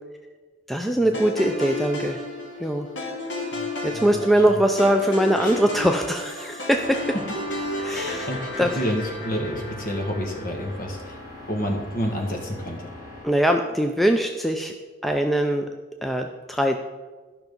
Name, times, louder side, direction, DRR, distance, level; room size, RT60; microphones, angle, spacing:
voice 1, 0.7-2.2 2.6-2.9 3.8-7.0 7.8-8.3 8.6-8.7 13.2-14.7 15.0-15.7 16.0-16.8, right 1 dB, ahead, 4 dB, 0.4 m, -22 dB
sound 1, 1.1-11.4, left 2 dB, 65° left, 2.0 m, -33 dB
voice 2, 3.9-4.6 5.4-5.6 7.1-7.2 7.8-11.2 11.5-12.9, equal, 45° left, 1 dB, 1.7 m, -29 dB
sound 2, 6.7-13.2, left 1 dB, 20° right, 2.4 m, -42 dB
12.0 x 5.9 x 5.2 m, 1.3 s
head